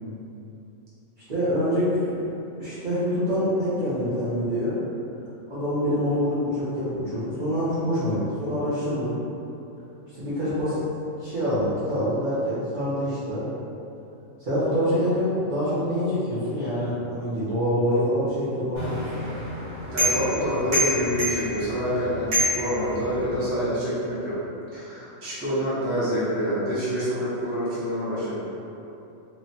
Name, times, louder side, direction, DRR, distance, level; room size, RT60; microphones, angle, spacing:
voice 1, 1.3-4.8 5.5-9.1 10.1-10.8 11.2-13.4 14.4-19.3, equal, 45° right, -12 dB, 0.7 m, -26 dB
sound 1, 18.8-23.5, equal, 65° right, 1.5 m, -28 dB
voice 2, 19.9-24.4 24.7-28.4, equal, 15° right, -11 dB, 0.5 m, -27 dB
3.1 x 2.1 x 2.7 m, 2.8 s
omnidirectional pair, 1.4 m